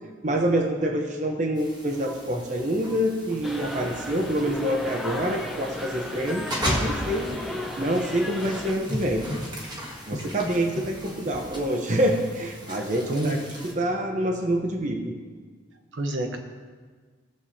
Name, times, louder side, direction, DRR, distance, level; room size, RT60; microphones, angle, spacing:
voice 1, 0.2-7.3 7.8-9.3 10.1-13.4 13.6-15.2, right 1 dB, 40° right, 2 dB, 0.9 m, -26 dB
sound 1, 1.6-13.7, equal, 25° right, 1.6 m, -36 dB
sound 2, 3.4-8.7, left 1 dB, ahead, 0.8 m, -35 dB
voice 2, 12.7-13.4 15.9-16.4, right 1 dB, 80° right, 4 dB, 1.1 m, -29 dB
17.5 x 7.1 x 2.8 m, 1.5 s
head